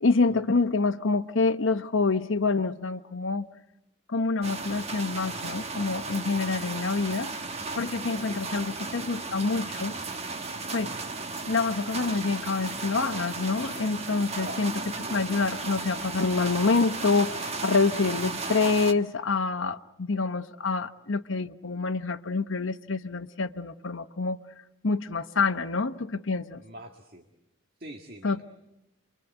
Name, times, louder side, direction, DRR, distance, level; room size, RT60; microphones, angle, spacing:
voice 1, 0.0-3.4 4.1-7.3 7.7-9.9 10.7-11.0 11.5-24.4 24.8-26.6 28.2-28.4, left 4 dB, 70° left, 0.9 m, -27 dB
sound 1, 4.4-18.9, right 3 dB, 30° right, 1.3 m, -35 dB
voice 2, 8.3-9.0 10.8-11.0 14.4-14.7 15.0-15.3 26.6-27.3 27.8-28.4, right 1 dB, 45° right, 1.8 m, -44 dB
29.0 x 23.5 x 8.1 m
head